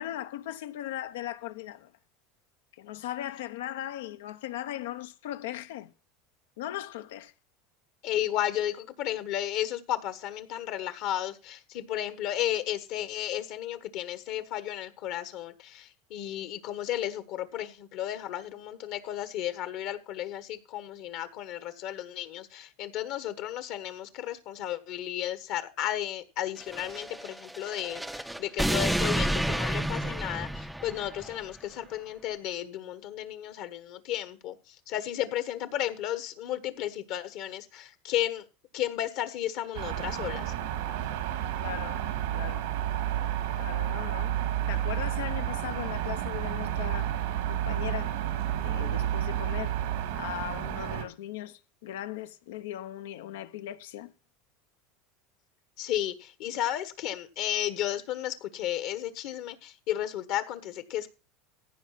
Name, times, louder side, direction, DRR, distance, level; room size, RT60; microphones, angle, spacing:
voice 1, 0.0-1.9 2.7-5.9 6.6-7.3 41.6-42.0 42.3-42.7 43.6-44.4 44.7-47.1 47.5-48.2 48.6-49.8 50.1-54.1, left 13 dB, 90° left, 0.8 m, -38 dB
voice 2, 8.0-38.4 38.7-40.5 55.8-61.1, left 12 dB, 60° left, 1.3 m, -33 dB
sound 1, 26.6-31.4, right 1 dB, 5° right, 0.5 m, -30 dB
sound 2, 39.7-51.0, right 11 dB, 85° right, 2.3 m, -31 dB
15.5 x 5.2 x 5.8 m
supercardioid pair, 125°, 0 cm